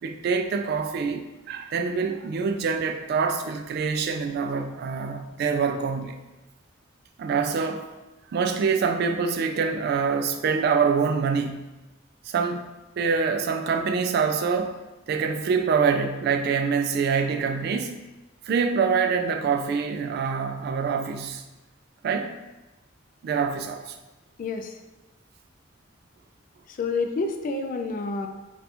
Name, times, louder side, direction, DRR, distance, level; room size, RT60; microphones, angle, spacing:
voice 1, 0.0-6.2 7.2-7.9 8.3-11.7 12.3-14.8 15.1-18.0 18.5-21.4 22.0-22.4 23.2-24.0, right 5 dB, 55° right, 6 dB, 0.3 m, -25 dB
voice 2, 24.4-24.7 26.7-28.3, left 3 dB, 45° left, 5 dB, 0.3 m, -28 dB
2.7 x 2.3 x 4.1 m, 1.1 s
head